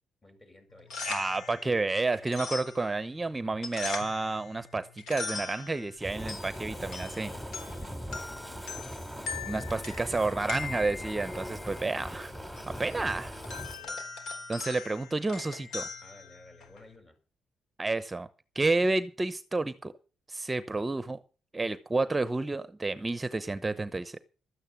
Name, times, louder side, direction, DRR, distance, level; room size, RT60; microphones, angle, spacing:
voice 1, 0.2-1.7 7.5-8.1 8.6-9.0 10.0-10.7 13.4-14.0 16.0-17.2, left 1 dB, 25° left, 6 dB, 7.3 m, -55 dB
sound 1, 0.7-16.9, left 4 dB, 75° left, 3.8 m, -42 dB
voice 2, 1.0-7.3 9.4-12.3 12.8-13.3 14.5-15.9 17.8-18.3 18.5-19.9 20.3-21.2 21.5-24.2, right 3 dB, 20° right, 13 dB, 0.8 m, -30 dB
Fire, 6.0-13.8, equal, 5° left, 3.2 m, -40 dB
13.0 x 9.0 x 7.3 m, 0.36 s
cardioid pair, 90°, 0 cm